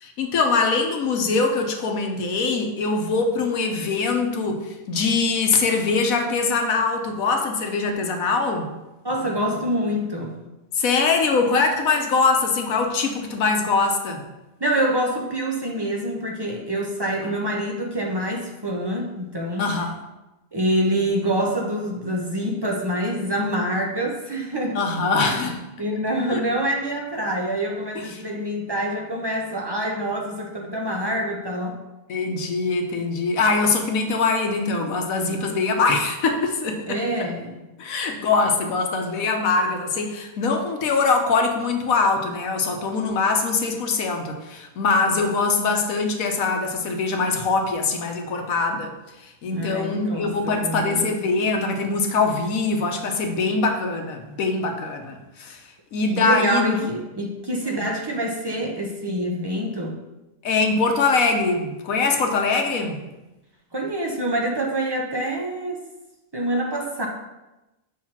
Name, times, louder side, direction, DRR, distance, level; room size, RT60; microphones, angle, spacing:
voice 1, 0.0-8.7 10.8-14.2 17.2-17.4 19.6-20.0 24.7-25.6 26.3-26.4 28.1-28.2 32.1-37.3 37.8-48.9 49.2-55.6 55.9-56.7 57.7-57.9 60.4-63.0, left 4 dB, 70° left, 4 dB, 1.2 m, -23 dB
voice 2, 9.0-10.4 14.6-19.7 20.5-24.8 25.8-31.8 36.9-37.6 49.5-51.1 56.2-60.0 63.7-65.8 66.3-67.1, right 1 dB, 30° right, 0 dB, 0.4 m, -26 dB
6.4 x 3.2 x 5.8 m, 1.0 s
omnidirectional pair, 1.6 m